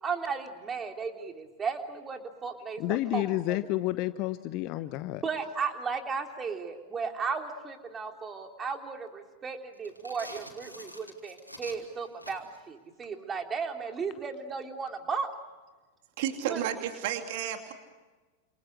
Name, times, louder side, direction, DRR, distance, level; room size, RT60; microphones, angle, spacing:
voice 1, 0.0-3.2 3.5-3.6 5.1-15.3 16.5-16.7, right 5 dB, 20° right, 4 dB, 3.4 m, -35 dB
voice 2, 2.8-5.2, left 16 dB, 40° left, 13 dB, 1.0 m, -30 dB
sound 1, 9.8-12.7, equal, 90° left, 3.7 m, -47 dB
voice 3, 16.2-17.7, right 10 dB, 50° right, 6 dB, 2.8 m, -32 dB
30.0 x 28.0 x 6.5 m, 1.3 s
figure-of-eight pair, 90°, 0 cm